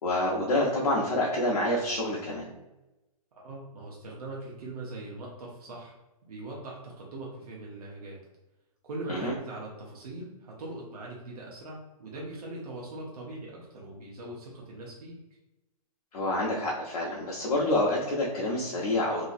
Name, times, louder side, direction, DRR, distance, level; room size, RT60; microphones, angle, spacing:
voice 1, 0.0-2.5 9.1-9.3 16.1-19.3, left 1 dB, 85° left, -5 dB, 0.8 m, -27 dB
voice 2, 3.3-6.0 6.3-8.2 8.8-15.2, right 2 dB, 75° right, -4 dB, 0.9 m, -41 dB
2.9 x 2.7 x 2.5 m, 1.0 s
hypercardioid pair, 170°, 19 cm